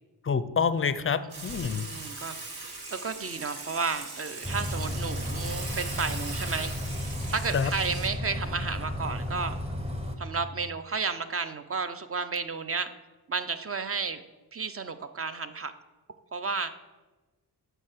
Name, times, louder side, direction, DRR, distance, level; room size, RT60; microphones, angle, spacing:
voice 1, 0.2-1.9 7.5-7.7, left 6 dB, 35° left, 13 dB, 0.4 m, -27 dB
voice 2, 1.2-2.4 2.9-6.7 7.3-9.6 10.2-12.9 13.3-14.2 14.5-15.7 16.3-16.7, right 5 dB, 35° right, 10 dB, 0.5 m, -32 dB
Water / Water tap faucet / Sink (filling or washing), 1.3-8.1, right 3 dB, 65° right, 1.5 m, -40 dB
Bus, 4.4-10.2, left 1 dB, 15° right, 0.9 m, -33 dB
8.8 x 3.3 x 6.5 m, 1.2 s
wide cardioid pair, 95°, 41 cm